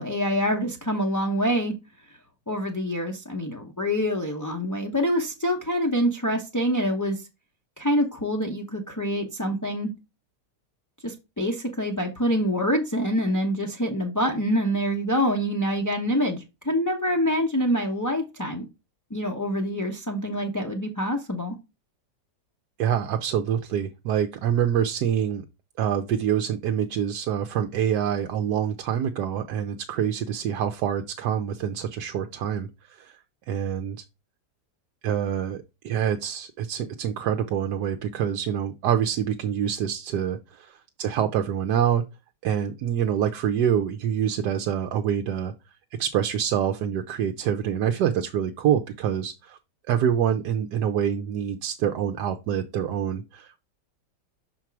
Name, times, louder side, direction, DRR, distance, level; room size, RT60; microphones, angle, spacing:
voice 1, 0.0-1.7 2.5-7.2 7.8-9.9 11.0-18.6 19.1-21.5, equal, 20° left, 0.5 m, -26 dB
voice 2, 22.8-25.4 25.8-33.2 33.5-34.0 35.0-42.0 42.4-45.5 46.0-49.6 49.9-53.6, right 9 dB, 80° right, 1.2 m, -26 dB
5.9 x 4.4 x 4.6 m
omnidirectional pair, 1.8 m